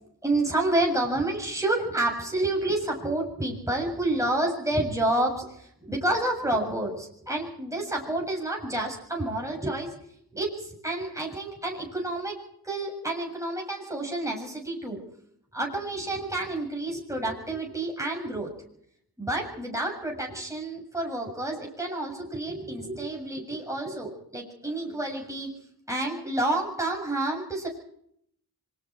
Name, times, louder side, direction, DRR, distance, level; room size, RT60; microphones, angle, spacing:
voice 1, 0.2-9.9 10.3-12.4 12.6-15.0 15.5-18.5 19.2-25.5 25.9-27.7, right 2 dB, 10° right, -1 dB, 7.6 m, -29 dB
26.0 x 22.0 x 4.7 m, 0.71 s
cardioid pair, 45°, 38 cm